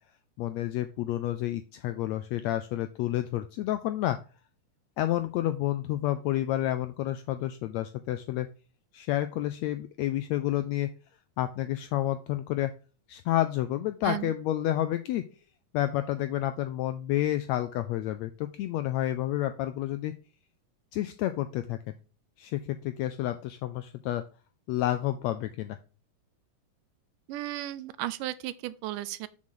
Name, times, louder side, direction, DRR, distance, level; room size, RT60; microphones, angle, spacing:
voice 1, 0.4-4.2 5.0-8.5 8.9-10.9 11.4-12.7 13.1-15.2 15.7-20.1 20.9-21.9 22.4-24.2 24.7-25.8, left 13 dB, 80° left, 1.5 m, -30 dB
voice 2, 27.3-29.3, right 15 dB, 85° right, 2.2 m, -34 dB
7.6 x 6.3 x 3.7 m
omnidirectional pair, 3.7 m